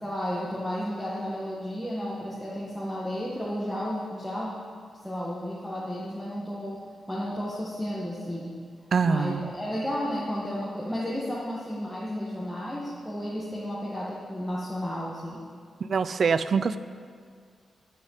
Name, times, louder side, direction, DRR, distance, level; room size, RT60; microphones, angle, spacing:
voice 1, 0.0-4.6 5.0-6.8 7.1-8.6 9.0-15.5, equal, ahead, -7 dB, 1.8 m, -32 dB
voice 2, 8.9-9.5 15.8-16.8, right 5 dB, 50° right, 13 dB, 0.5 m, -24 dB
18.5 x 6.6 x 7.5 m, 2.1 s
wide cardioid pair, 155°, 0 cm